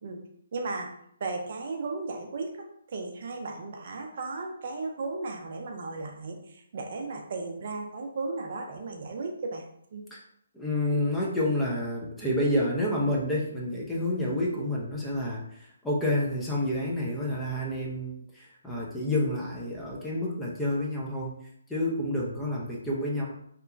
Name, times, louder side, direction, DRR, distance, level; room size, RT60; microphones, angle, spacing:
voice 1, 0.5-0.9 1.2-9.6 9.9-10.1, right 3 dB, 50° right, 2 dB, 0.4 m, -35 dB
voice 2, 10.5-21.3 21.7-23.3, left 1 dB, 5° left, -5 dB, 0.5 m, -29 dB
2.8 x 2.2 x 2.4 m, 0.70 s
hypercardioid pair, 155°, 0 cm